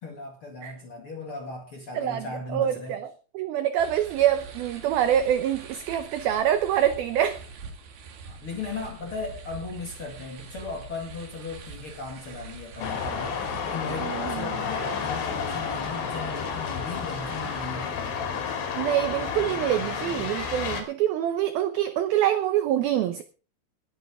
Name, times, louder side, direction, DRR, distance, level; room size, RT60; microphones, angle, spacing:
voice 1, 0.0-3.0 8.2-18.3, left 3 dB, 45° left, 1.9 m, -37 dB
voice 2, 1.9-2.3 2.5-3.1 3.3-7.4 14.0-14.5 18.8-23.2, right 11 dB, 80° right, 2.1 m, -25 dB
sound 1, 3.8-17.7, right 4 dB, 60° right, 3.7 m, -44 dB
sound 2, 12.8-20.8, left 6 dB, 75° left, 5.0 m, -31 dB
20.0 x 9.6 x 3.6 m
omnidirectional pair, 5.4 m